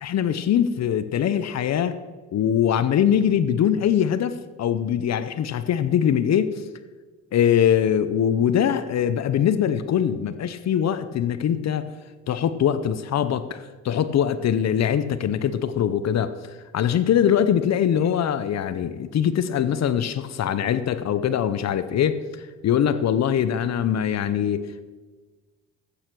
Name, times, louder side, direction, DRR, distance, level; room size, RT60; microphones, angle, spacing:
voice 1, 0.0-2.0 2.3-6.6 7.3-11.9 12.3-16.3 16.7-22.2 22.6-24.9, left 9 dB, 60° left, 13 dB, 0.8 m, -22 dB
13.5 x 8.6 x 6.1 m, 1.4 s
cardioid pair, 90°, 30 cm